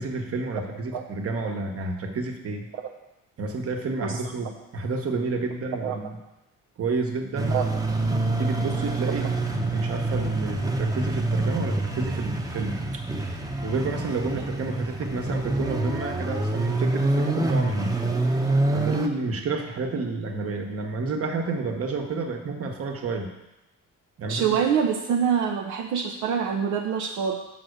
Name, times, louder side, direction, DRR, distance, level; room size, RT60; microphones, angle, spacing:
voice 1, 0.0-2.7 3.4-6.1 6.8-7.6 8.4-13.0 13.6-18.1 18.7-23.3 24.2-24.6, right 3 dB, 50° right, 3 dB, 1.2 m, -30 dB
sound 1, 7.4-19.1, right 2 dB, 10° right, 0.8 m, -26 dB
voice 2, 24.3-27.4, right 7 dB, 75° right, 1 dB, 0.7 m, -25 dB
5.8 x 4.9 x 6.5 m, 0.96 s
cardioid pair, 90°, 30 cm